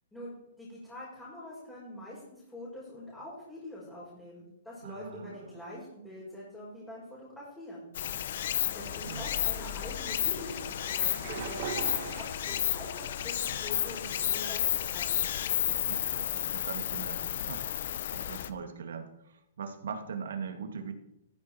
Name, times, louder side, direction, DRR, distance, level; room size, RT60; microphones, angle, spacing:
voice 1, 0.1-7.9 8.7-15.3, left 1 dB, 5° left, -8 dB, 5.7 m, -45 dB
voice 2, 4.8-5.6 8.9-9.3 15.7-17.7 18.1-20.9, right 6 dB, 75° right, 6 dB, 2.5 m, -41 dB
Stream, 7.9-18.5, left 10 dB, 60° left, 1.1 m, -32 dB
sound 1, 9.2-12.9 13.3-14.0, right 7 dB, 45° right, 1.7 m, -42 dB
15.0 x 13.5 x 4.8 m, 0.86 s
hypercardioid pair, 155°, 0 cm